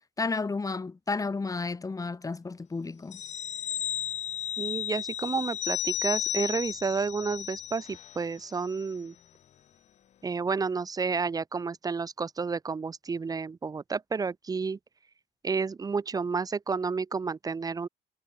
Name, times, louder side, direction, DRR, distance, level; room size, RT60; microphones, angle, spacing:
voice 1, 0.2-3.2, left 4 dB, 20° left, 2.4 m, -32 dB
sound 1, 3.1-8.2 8.5-8.7, left 10 dB, 45° left, 0.5 m, -33 dB
voice 2, 4.6-9.1 10.2-14.8 15.4-17.9, right 4 dB, 20° right, 0.6 m, -31 dB
cardioid pair, 110°, 17 cm